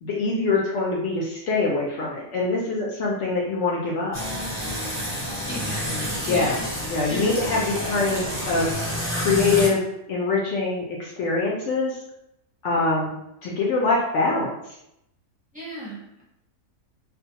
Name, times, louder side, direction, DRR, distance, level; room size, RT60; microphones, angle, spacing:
voice 1, 0.0-4.2 6.3-6.6 6.9-8.7 9.1-12.0 12.6-13.1 13.4-14.5, left 3 dB, 70° left, -4 dB, 0.7 m, -24 dB
sound 1, 4.1-9.7, equal, 10° left, 1.1 m, -29 dB
voice 2, 5.5-6.7 7.1-7.3 15.5-16.2, left 1 dB, 10° right, -8 dB, 0.5 m, -34 dB
2.5 x 2.2 x 2.7 m, 0.81 s
omnidirectional pair, 1.7 m